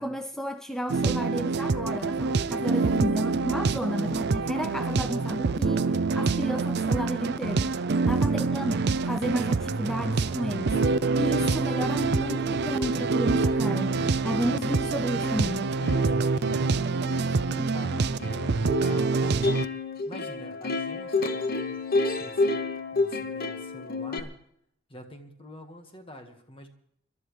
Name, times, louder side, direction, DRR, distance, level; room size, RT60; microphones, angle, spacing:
voice 1, 0.0-15.7, equal, 5° left, 7 dB, 0.5 m, -32 dB
sound 1, 0.9-19.7, right 4 dB, 60° right, 0.5 m, -26 dB
voice 2, 8.0-8.5 16.1-19.4 19.7-24.3 24.9-26.7, left 1 dB, 30° left, 5 dB, 1.7 m, -47 dB
Plucked string instrument, 10.3-10.4 10.7-24.2, left 3 dB, 50° left, 1.0 m, -32 dB
26.0 x 12.5 x 3.3 m, 0.69 s
head